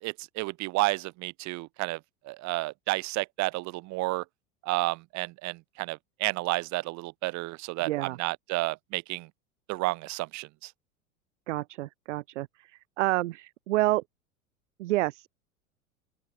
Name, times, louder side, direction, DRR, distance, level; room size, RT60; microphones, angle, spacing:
voice 1, 0.0-2.0 2.2-4.2 4.6-9.3 9.7-10.7, right 21 dB, 40° right, 2.6 m, -31 dB
voice 2, 7.8-8.2 11.5-14.0 14.8-15.3, right 17 dB, 55° right, 1.2 m, -29 dB
open air
figure-of-eight pair, 85°, 43 cm